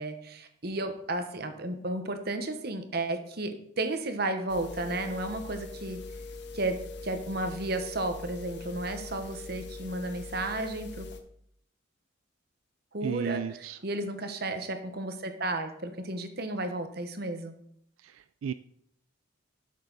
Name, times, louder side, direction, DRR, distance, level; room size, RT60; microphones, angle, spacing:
voice 1, 0.0-6.0 6.5-11.1 12.9-13.4 13.8-17.5, right 2 dB, 50° right, 7 dB, 1.1 m, -33 dB
sound 1, 4.5-11.2, left 3 dB, 55° left, 1.1 m, -42 dB
voice 2, 13.0-13.8 18.0-18.5, right 7 dB, 85° right, 13 dB, 0.3 m, -34 dB
12.0 x 6.7 x 4.0 m, 0.71 s
head